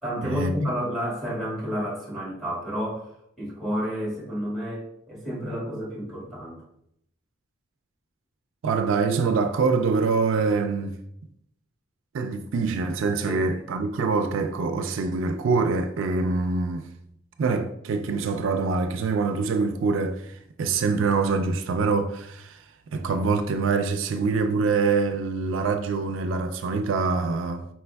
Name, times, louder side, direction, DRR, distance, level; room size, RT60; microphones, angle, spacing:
voice 1, 0.0-6.6 13.2-13.4, equal, ahead, 1.7 m, -30 dB
voice 2, 8.6-11.0 12.1-16.9 17.4-22.6 22.9-27.7, right 4 dB, 75° right, 0.3 m, -25 dB
4.4 x 4.2 x 2.2 m
head